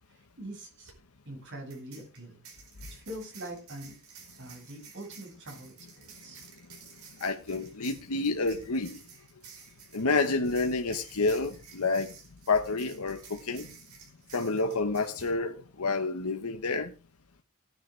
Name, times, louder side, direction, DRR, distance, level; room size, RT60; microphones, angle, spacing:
voice 1, 0.4-0.9 1.3-2.4 2.9-3.9 4.4-6.4, right 1 dB, 55° right, 1 dB, 6.8 m, -43 dB
sound 1, 0.7-0.9 1.7-15.3, right 6 dB, 80° right, 4.8 m, -52 dB
voice 2, 7.2-9.0 9.9-12.1 12.5-13.8 14.3-16.9, left 3 dB, 85° left, 6 dB, 1.1 m, -29 dB
17.5 x 10.0 x 3.3 m, 0.31 s
head